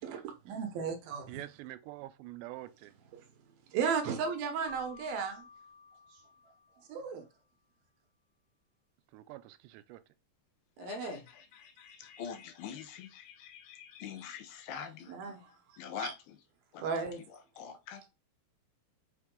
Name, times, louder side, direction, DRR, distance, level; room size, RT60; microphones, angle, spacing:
voice 1, 0.0-1.4 2.9-3.2 3.7-5.4 6.9-7.3 10.8-11.2 14.7-16.1 16.8-17.2 17.6-17.8, right 6 dB, 70° right, 2.6 m, -36 dB
voice 2, 1.3-3.0 9.1-10.0, right 16 dB, 90° right, 2.8 m, -46 dB
Keyboard (musical), 4.7-7.2, left 3 dB, 20° left, 3.9 m, -53 dB
voice 3, 10.8-16.4 16.7-18.1, left 8 dB, 75° left, 2.9 m, -45 dB
6.9 x 5.8 x 3.8 m
omnidirectional pair, 4.9 m